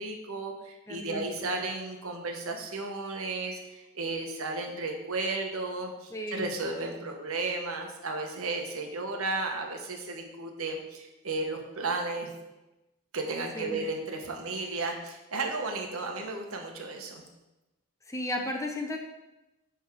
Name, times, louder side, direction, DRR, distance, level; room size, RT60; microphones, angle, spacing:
voice 1, 0.0-12.3 13.1-17.2, right 3 dB, 75° right, 3 dB, 1.3 m, -34 dB
voice 2, 0.9-1.6 6.1-6.5 13.5-13.8 18.1-19.0, left 1 dB, 15° left, 3 dB, 0.7 m, -34 dB
9.2 x 3.6 x 6.2 m, 1.0 s
head